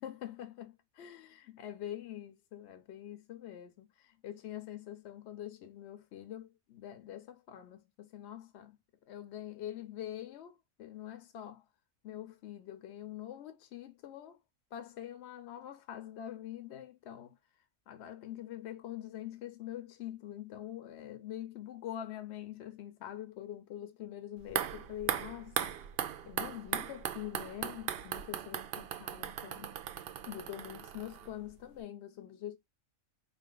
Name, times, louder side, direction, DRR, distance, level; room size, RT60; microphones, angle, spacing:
voice 1, 0.0-8.8 9.1-11.6 12.0-14.4 14.7-17.4 17.9-25.8 26.2-29.7 30.3-32.6, left 11 dB, 65° left, 0.8 m, -45 dB
sound 1, 24.4-31.5 31.8-31.9, right 9 dB, 65° right, 0.6 m, -38 dB
4.0 x 2.5 x 3.7 m
omnidirectional pair, 1.4 m